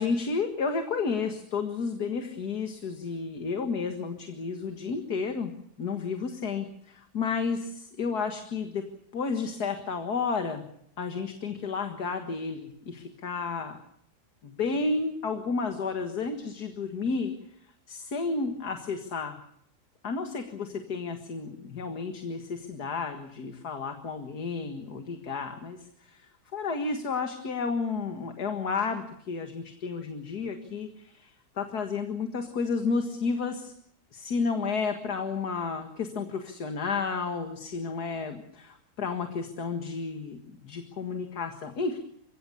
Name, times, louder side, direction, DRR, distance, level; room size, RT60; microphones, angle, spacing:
voice 1, 0.0-5.5 5.8-8.8 9.1-10.6 11.0-13.8 14.4-17.3 17.9-19.4 20.0-25.8 26.1-26.2 26.5-31.3 31.6-33.7 34.1-42.0, left 4 dB, 85° left, 6 dB, 2.3 m, -31 dB
29.0 x 17.0 x 7.0 m, 0.71 s
omnidirectional pair, 1.6 m